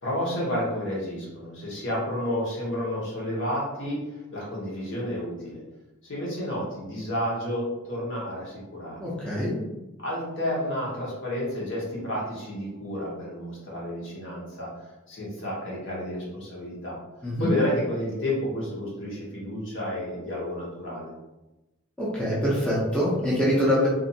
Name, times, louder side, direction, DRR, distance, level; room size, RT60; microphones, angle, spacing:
voice 1, 0.0-4.0 4.3-5.6 6.0-9.0 10.0-14.7 15.1-17.0 17.4-21.1, left 1 dB, 55° left, -5 dB, 1.0 m, -31 dB
voice 2, 9.0-9.5 17.2-17.5 22.0-23.9, equal, 5° left, -8 dB, 0.5 m, -24 dB
2.5 x 2.4 x 2.7 m, 1.0 s
head